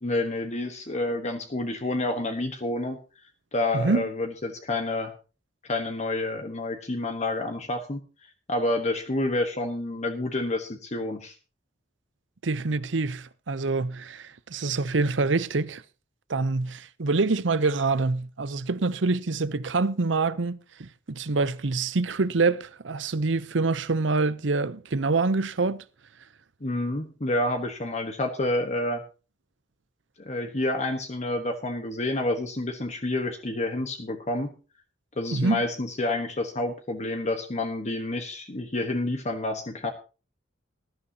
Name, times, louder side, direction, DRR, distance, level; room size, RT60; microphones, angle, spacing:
voice 1, 0.0-3.0 3.5-5.1 5.7-8.0 8.5-11.3 26.6-29.0 30.2-34.5 35.2-39.9, left 2 dB, 40° left, 1.3 m, -29 dB
voice 2, 3.7-4.1 12.4-15.8 16.3-25.8 35.3-35.6, right 3 dB, 85° right, 0.8 m, -26 dB
18.5 x 11.5 x 2.9 m
head